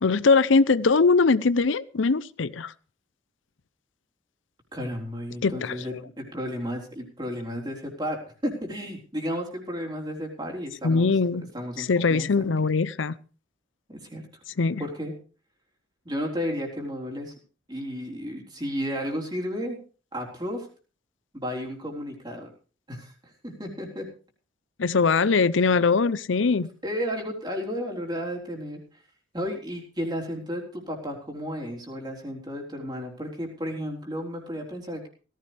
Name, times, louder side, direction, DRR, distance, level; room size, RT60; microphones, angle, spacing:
voice 1, 0.0-2.7 5.4-5.8 10.8-11.5 11.8-13.1 14.6-14.8 24.8-26.7, left 4 dB, 80° left, 17 dB, 0.6 m, -21 dB
voice 2, 4.7-11.1 11.5-12.5 14.0-14.2 14.8-15.1 16.1-17.3 17.7-19.8 20.1-20.7 21.3-22.5 22.9-24.1 26.8-29.0 29.3-35.1, equal, 20° right, 0 dB, 3.8 m, -33 dB
17.5 x 15.0 x 3.4 m, 0.37 s
head